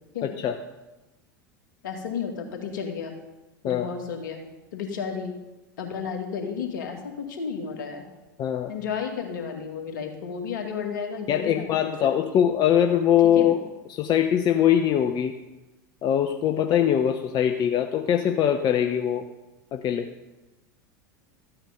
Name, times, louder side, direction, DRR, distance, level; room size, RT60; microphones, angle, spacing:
voice 1, 0.2-0.5 3.6-3.9 8.4-8.7 11.3-13.6 13.9-15.3 16.0-19.2 19.7-20.1, left 9 dB, 40° left, 6 dB, 0.8 m, -22 dB
voice 2, 1.8-3.1 3.6-4.4 4.7-5.4 5.8-8.0 8.7-11.9 12.3-12.4 13.2-13.5, left 6 dB, 70° left, 3 dB, 2.2 m, -32 dB
13.5 x 8.9 x 5.2 m, 1.1 s
hypercardioid pair, 80°, 11 cm